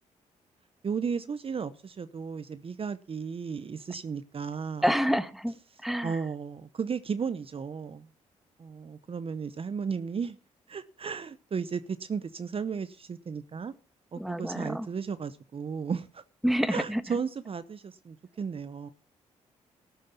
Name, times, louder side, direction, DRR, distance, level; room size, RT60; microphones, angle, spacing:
voice 1, 0.8-4.9 6.0-8.1 8.6-10.4 10.7-13.7 14.1-16.2 16.7-18.9, right 6 dB, 40° right, 0.8 m, -34 dB
voice 2, 4.8-5.5 5.8-6.2 14.2-14.9 16.4-17.0, equal, ahead, 1.4 m, -27 dB
13.0 x 10.0 x 5.6 m
supercardioid pair, 55°, 14 cm